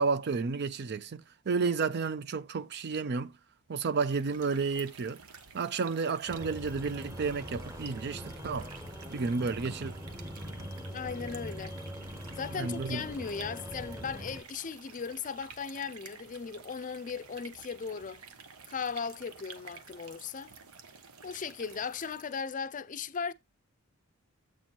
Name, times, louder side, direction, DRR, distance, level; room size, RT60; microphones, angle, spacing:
voice 1, 0.0-3.3 3.7-5.2 5.5-8.7 9.1-9.9 12.5-13.0, right 4 dB, 50° right, 0.5 m, -31 dB
sound 1, 3.9-22.5, right 5 dB, 90° right, 1.1 m, -51 dB
sound 2, 6.3-14.4, equal, 15° right, 1.0 m, -42 dB
voice 2, 10.9-11.8 12.4-18.2 18.7-20.5 21.2-23.3, left 6 dB, 35° left, 0.5 m, -37 dB
8.1 x 4.4 x 4.5 m
head